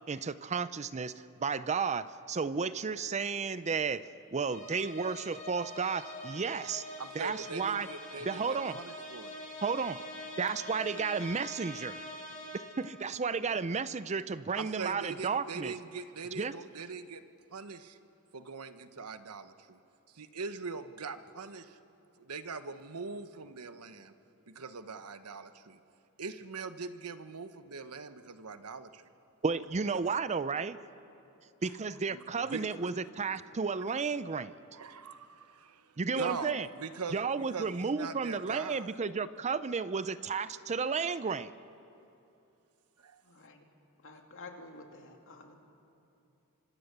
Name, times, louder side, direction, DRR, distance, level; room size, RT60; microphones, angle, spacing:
voice 1, 0.1-1.1 1.4-6.8 7.2-7.9 8.2-8.8 9.6-10.0 10.4-12.0 12.8-15.7 16.4-16.5 29.4-30.8 31.6-34.5 36.0-36.7 37.1-41.5, right 5 dB, 30° right, 15 dB, 0.5 m, -33 dB
sound 1, 4.5-13.0, equal, 35° left, 4.3 m, -45 dB
voice 2, 7.0-9.4 14.5-17.2 17.5-18.0 18.3-19.8 20.1-21.8 22.2-24.1 24.5-25.8 26.2-29.1 31.6-31.7 32.1-32.9 34.7-39.0 43.0-43.2, right 4 dB, 90° right, 10 dB, 1.1 m, -42 dB
voice 3, 43.2-43.6 44.0-45.5, left 3 dB, 60° left, 3 dB, 2.8 m, -50 dB
26.5 x 25.0 x 6.8 m, 2.8 s
head